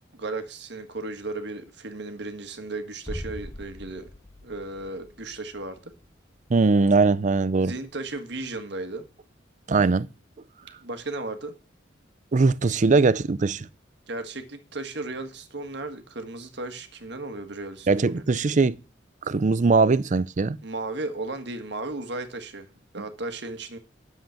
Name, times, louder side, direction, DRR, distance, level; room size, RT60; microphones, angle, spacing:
voice 1, 0.1-4.1 4.4-5.8 7.6-9.1 10.8-11.6 14.1-18.2 20.6-22.7 22.9-23.8, right 2 dB, 65° right, 1.7 m, -35 dB
sound 1, 3.1-8.8 9.1-9.2, equal, 15° left, 0.9 m, -43 dB
voice 2, 6.5-7.7 9.7-10.1 12.3-13.7 17.9-18.8 19.3-20.6, right 4 dB, 40° right, 0.5 m, -21 dB
10.5 x 7.6 x 5.8 m
head